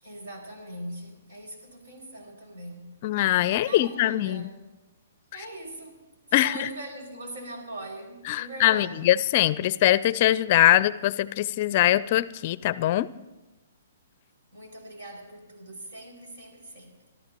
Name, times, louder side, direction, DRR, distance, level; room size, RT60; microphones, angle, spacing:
voice 1, 0.0-3.0 3.7-4.6 5.3-9.1 14.5-17.0, right 1 dB, 70° right, 1 dB, 6.1 m, -41 dB
voice 2, 3.0-4.4 6.3-6.7 8.3-13.1, left 14 dB, 45° left, 17 dB, 0.5 m, -22 dB
26.5 x 13.0 x 3.0 m, 1.1 s
hypercardioid pair, 140°, 0 cm